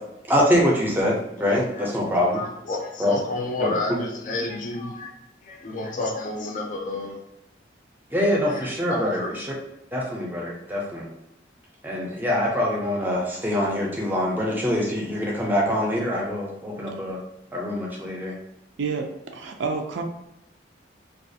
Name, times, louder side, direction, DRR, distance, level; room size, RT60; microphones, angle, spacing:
voice 1, 0.3-2.4 3.0-3.1 3.6-3.8 8.1-9.5 9.9-11.1 11.8-17.2 17.5-18.3, left 1 dB, 10° right, -3 dB, 0.5 m, -24 dB
voice 2, 1.5-1.9 2.3-5.1 5.5-7.2 8.5-9.4, left 2 dB, 45° left, 1 dB, 0.4 m, -30 dB
voice 3, 18.8-20.0, right 4 dB, 80° right, 4 dB, 0.4 m, -29 dB
2.4 x 2.3 x 2.7 m, 0.88 s
head